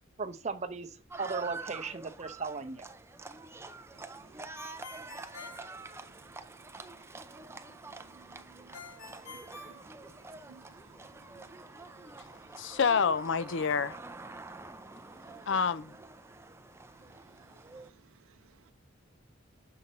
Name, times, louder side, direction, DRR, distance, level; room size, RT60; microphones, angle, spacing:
voice 1, 0.2-2.9, right 4 dB, 35° right, 0.8 m, -37 dB
Livestock farm animals working animals, 1.1-17.9, right 3 dB, 15° right, 0.5 m, -47 dB
voice 2, 3.9-12.6 15.1-15.5 17.0-18.7, right 6 dB, 85° right, 0.5 m, -61 dB
Ringtone, 4.5-6.5 8.7-10.6, left 3 dB, 85° left, 2.0 m, -48 dB
voice 3, 12.6-14.0 15.5-15.9, left 6 dB, 60° left, 0.5 m, -28 dB
6.7 x 6.0 x 4.2 m
head